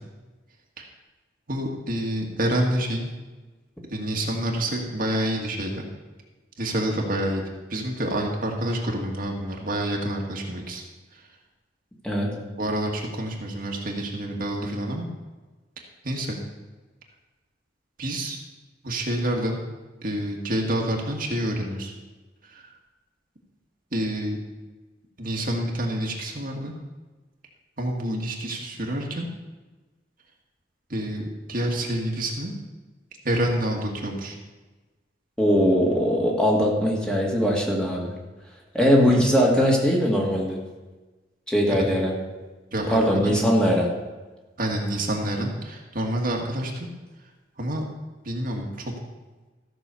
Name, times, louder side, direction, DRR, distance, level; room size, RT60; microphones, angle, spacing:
voice 1, 1.5-3.1 3.9-5.8 6.6-7.4 7.7-10.8 11.1-11.2 12.6-15.1 16.0-16.4 18.0-18.4 18.8-19.6 20.0-21.9 22.4-22.7 23.9-24.4 25.2-26.7 27.8-29.3 30.9-32.5 33.2-34.4 39.1-39.2 42.7-43.3 44.6-46.9 47.6-47.8 48.2-48.9, right 1 dB, 50° right, 0 dB, 1.8 m, -28 dB
voice 2, 35.4-38.1 38.7-40.6 41.5-42.1 42.9-43.9, equal, 5° left, -2 dB, 2.1 m, -21 dB
14.5 x 6.2 x 6.9 m, 1.2 s
head